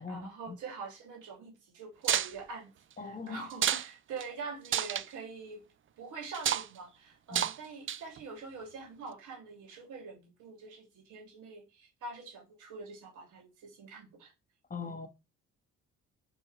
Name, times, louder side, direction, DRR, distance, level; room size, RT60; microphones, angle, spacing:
voice 1, 0.0-2.7 3.0-5.6 6.0-14.3 14.8-14.9, right 4 dB, 80° right, 3.0 m, -45 dB
sound 1, 2.0-2.3 3.5-3.9 4.2-4.3 4.7-5.1 6.3-6.7 7.3-7.6 7.9-8.2, right 10 dB, 40° right, 0.5 m, -29 dB
voice 2, 3.0-3.5 7.3-7.5 14.7-15.1, left 5 dB, 30° left, 1.5 m, -40 dB
4.5 x 4.5 x 4.7 m
cardioid pair, 90°, 30 cm